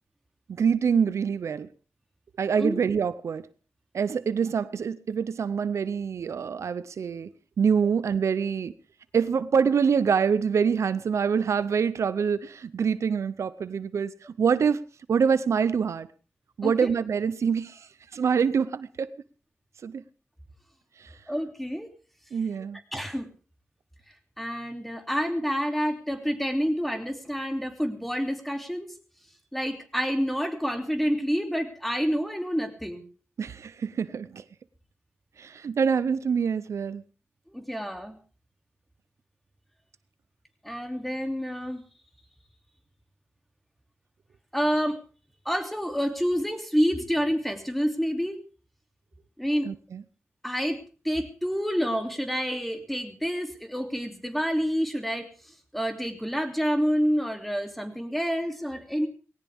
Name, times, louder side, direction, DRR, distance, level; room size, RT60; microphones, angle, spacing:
voice 1, 0.5-1.7 2.4-3.5 3.9-7.3 7.6-8.7 9.1-14.8 15.1-16.1 16.6-19.1 19.8-20.0 21.0-21.2 22.3-22.8 33.4-34.4 35.4-37.0 49.6-50.0, right 6 dB, 80° right, 0.7 m, -25 dB
voice 2, 21.3-21.9 22.9-23.3 24.4-28.9 29.5-33.0 37.5-38.2 40.6-41.8 44.5-45.0 45.4-48.4 49.4-49.7 50.4-50.8 51.0-59.1, equal, ahead, 2.8 m, -28 dB
19.0 x 17.5 x 3.6 m
wide cardioid pair, 90°, 5 cm